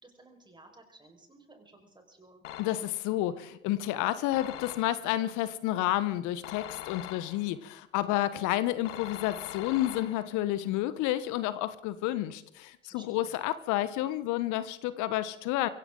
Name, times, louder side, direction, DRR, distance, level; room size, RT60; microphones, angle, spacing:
voice 1, 0.0-2.5 12.8-13.4, right 2 dB, 10° right, 4 dB, 5.1 m, -56 dB
sound 1, 2.4-3.1 4.3-5.2 6.4-7.6 8.8-10.5, left 12 dB, 65° left, 1.7 m, -43 dB
voice 2, 2.6-15.7, left 14 dB, 50° left, 15 dB, 1.2 m, -30 dB
24.0 x 15.5 x 3.9 m, 0.81 s
figure-of-eight pair, 80°, 39 cm